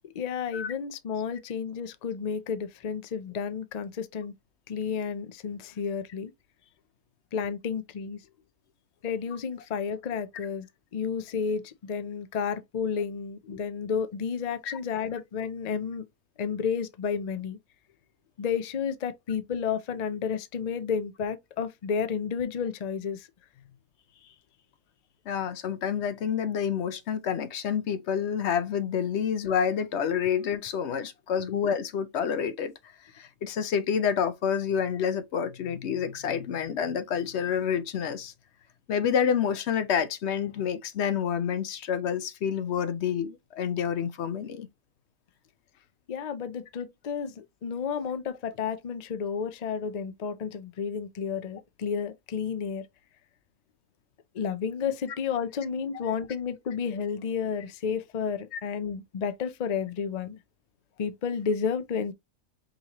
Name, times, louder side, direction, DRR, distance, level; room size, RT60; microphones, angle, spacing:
voice 1, 0.0-4.3 4.7-6.3 7.3-8.2 9.0-10.7 10.9-16.0 16.4-17.6 18.4-23.3 31.5-31.6 46.1-52.9 54.3-60.4 61.0-62.1, left 6 dB, 90° left, 0.3 m, -31 dB
voice 2, 25.3-32.7 33.1-38.3 38.9-44.7 55.9-56.0 58.5-58.6, left 7 dB, 60° left, 0.8 m, -28 dB
5.4 x 2.9 x 2.9 m
omnidirectional pair, 1.5 m